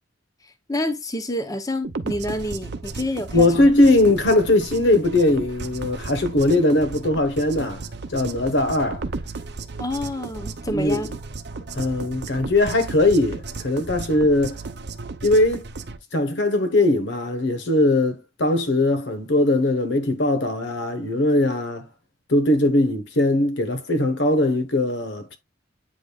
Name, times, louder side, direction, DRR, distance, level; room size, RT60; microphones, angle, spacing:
voice 1, 0.4-3.7 9.8-11.2, left 1 dB, 20° left, 0.8 m, -28 dB
sound 1, 1.8-16.0, right 3 dB, 60° right, 0.7 m, -34 dB
voice 2, 3.3-7.8 8.1-9.0 10.7-11.0 11.7-14.6 15.2-15.6 16.1-21.9 22.3-25.4, left 2 dB, 70° left, 1.2 m, -20 dB
8.6 x 5.1 x 2.3 m
head